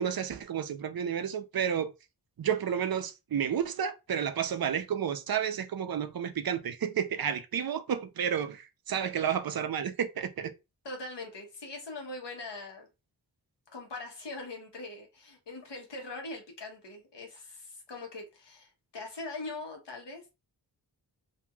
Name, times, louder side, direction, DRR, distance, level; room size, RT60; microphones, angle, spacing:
voice 1, 0.0-1.9 2.4-10.5, right 8 dB, 60° right, 0.5 m, -31 dB
voice 2, 10.8-12.9 13.7-20.3, left 2 dB, 75° left, 1.1 m, -42 dB
3.0 x 2.6 x 2.2 m
wide cardioid pair, 85°, 42 cm